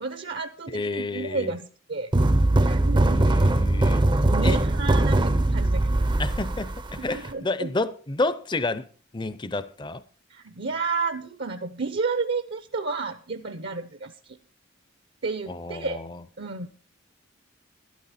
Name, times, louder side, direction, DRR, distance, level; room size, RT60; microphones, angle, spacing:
voice 1, 0.0-2.1 2.7-3.6 4.3-6.1 7.0-7.7 10.3-14.4 15.2-16.0 16.4-16.7, right 4 dB, 55° right, 0.7 m, -31 dB
voice 2, 0.7-1.5 3.1-4.0 4.4-4.6 6.2-8.9 9.1-10.0 15.5-16.2, left 2 dB, 25° left, 0.6 m, -30 dB
sound 1, 2.1-7.3, right 1 dB, 20° right, 0.5 m, -21 dB
12.5 x 12.0 x 4.2 m
head